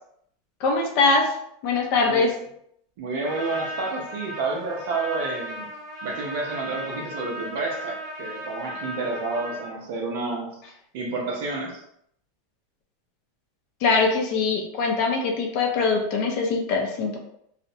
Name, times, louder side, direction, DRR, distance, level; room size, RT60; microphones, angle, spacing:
voice 1, 0.6-1.3 1.6-2.3 13.8-17.2, left 4 dB, 40° left, 2 dB, 0.4 m, -22 dB
voice 2, 3.0-5.7 6.0-10.6 10.9-11.8, right 3 dB, 55° right, 0 dB, 0.6 m, -30 dB
Trumpet, 3.2-9.7, equal, ahead, 0.7 m, -36 dB
2.4 x 2.0 x 2.6 m, 0.71 s
supercardioid pair, 175°, 0 cm